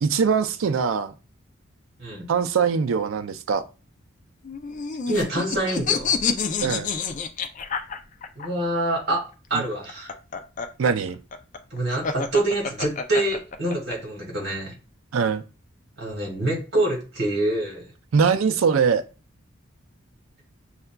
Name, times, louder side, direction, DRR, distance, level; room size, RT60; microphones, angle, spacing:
voice 1, 0.0-1.1 2.3-3.6 6.6-6.9 9.5-9.6 10.8-11.2 15.1-15.4 18.1-19.0, right 6 dB, 80° right, 0.4 m, -22 dB
sound 1, 4.4-8.5 9.7-14.0, left 5 dB, 40° left, 0.3 m, -28 dB
voice 2, 5.1-6.1 8.3-9.2 9.5-10.1 11.7-14.7 16.0-17.9, right 1 dB, 55° right, 1.6 m, -26 dB
6.6 x 2.4 x 2.2 m
head